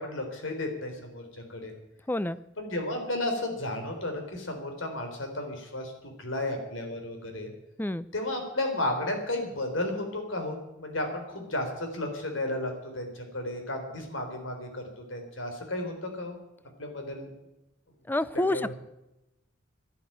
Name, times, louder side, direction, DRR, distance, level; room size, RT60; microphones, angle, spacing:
voice 1, 0.0-1.7 2.6-5.9 6.2-7.5 8.1-14.8 15.1-16.4 16.8-17.3 18.3-18.7, left 1 dB, 85° left, 4 dB, 4.0 m, -33 dB
voice 2, 2.1-2.4 7.8-8.0 18.1-18.7, left 1 dB, 10° left, 16 dB, 0.5 m, -28 dB
11.5 x 11.5 x 9.1 m, 0.93 s
head